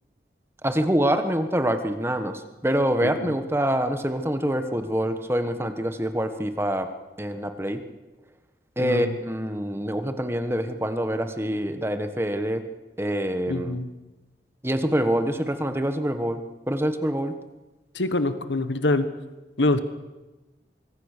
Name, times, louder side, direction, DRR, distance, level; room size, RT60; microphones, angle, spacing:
voice 1, 0.6-6.9 7.2-7.8 8.8-12.6 13.0-13.8 14.6-17.3, equal, 15° right, 8 dB, 1.4 m, -25 dB
voice 2, 3.0-3.3 8.8-9.1 13.5-13.9 17.9-19.1 19.6-19.8, left 2 dB, 90° left, 11 dB, 1.5 m, -25 dB
24.5 x 23.5 x 6.8 m, 1.1 s
head